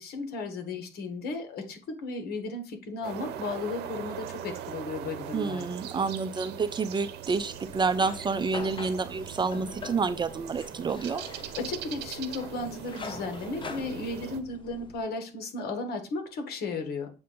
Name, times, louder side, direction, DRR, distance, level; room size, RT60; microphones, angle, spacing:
voice 1, 0.0-5.7 11.6-17.1, left 3 dB, 70° left, 6 dB, 1.7 m, -35 dB
sound 1, 3.0-14.4, right 10 dB, 80° right, 0.7 m, -41 dB
voice 2, 5.3-11.2, right 4 dB, 25° right, 12 dB, 0.5 m, -29 dB
sound 2, 7.3-15.0, left 4 dB, 30° left, 0.9 m, -44 dB
7.7 x 2.7 x 5.2 m, 0.34 s
cardioid pair, 110°, 17 cm